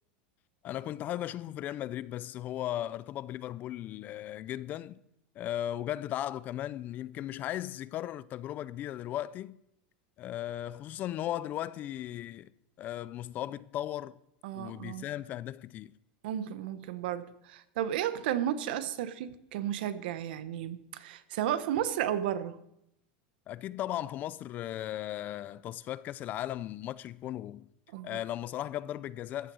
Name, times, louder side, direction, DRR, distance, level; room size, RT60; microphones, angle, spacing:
voice 1, 0.6-5.0 5.4-9.6 10.2-12.5 12.8-14.2 14.5-15.9 23.5-27.7 28.0-29.5, left 12 dB, 35° left, 0.4 m, -37 dB
voice 2, 14.4-15.0 16.2-22.6 27.9-28.2, right 10 dB, 75° right, 1.0 m, -33 dB
14.5 x 9.3 x 6.2 m
supercardioid pair, 150°, 5 cm